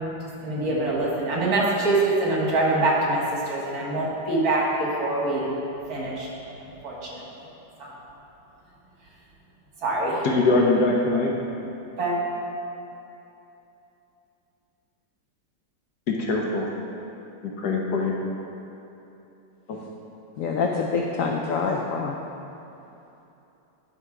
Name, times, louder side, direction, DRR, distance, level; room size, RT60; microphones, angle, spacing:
voice 1, 0.4-5.5 5.9-6.3 6.8-7.2 7.8-7.9 9.8-10.3 12.0-12.1, right 2 dB, 55° right, -4 dB, 1.8 m, -24 dB
voice 2, 10.2-11.4 16.1-16.7 17.4-18.1 19.7-19.8, left 3 dB, 65° left, -1 dB, 1.2 m, -22 dB
voice 3, 20.4-22.2, left 4 dB, 85° left, 0 dB, 0.7 m, -26 dB
10.5 x 3.7 x 4.7 m, 2.9 s
omnidirectional pair, 2.0 m